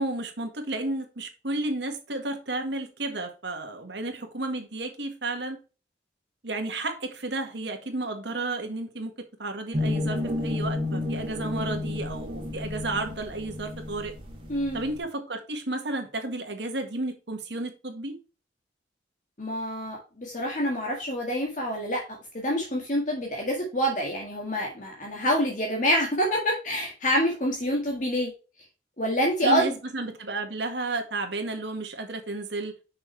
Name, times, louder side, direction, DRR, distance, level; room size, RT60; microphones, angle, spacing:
voice 1, 0.0-5.6 6.4-9.1 9.4-14.1 14.7-18.2 29.4-32.7, right 2 dB, 70° right, 1.7 m, -32 dB
sound 1, 9.7-15.0, left 2 dB, 30° right, 1.9 m, -31 dB
voice 2, 14.5-14.8 19.4-22.0 22.3-28.3 29.0-29.7, equal, 45° left, 1.8 m, -26 dB
6.2 x 6.1 x 3.3 m
head